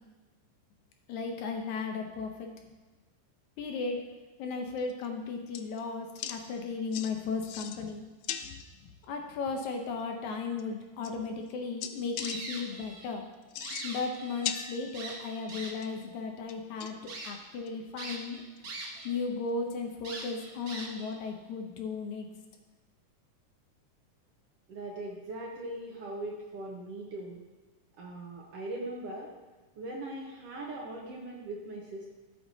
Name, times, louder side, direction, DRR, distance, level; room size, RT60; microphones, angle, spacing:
voice 1, 1.1-2.5 3.6-4.0 4.4-8.0 8.8-13.3 13.8-18.4 19.0-22.3, left 4 dB, 70° left, 3 dB, 2.1 m, -35 dB
sound 1, 4.8-5.1 5.5-5.8 6.2-6.4 6.9-7.1 7.4-7.9 8.2-8.7 10.0-10.1 10.6-10.7 11.0-11.5 11.8-12.4 13.4-14.2 14.4-15.2 15.5-16.0 16.5-17.1 17.7-17.8 18.1-18.2 18.6-18.7 19.0-19.1 21.1-21.2, left 10 dB, 90° left, 2.2 m, -38 dB
sound 2, 12.2-13.1 13.4-14.5 14.9-15.9 16.5-16.6 17.1-17.3 18.0-19.1 19.4-19.5 20.0-21.1, right 2 dB, 85° right, 0.8 m, -42 dB
voice 2, 24.7-27.4 28.0-29.3 29.8-32.1, right 1 dB, 60° right, -2 dB, 1.7 m, -40 dB
13.5 x 8.1 x 2.7 m, 1.3 s
omnidirectional pair, 3.7 m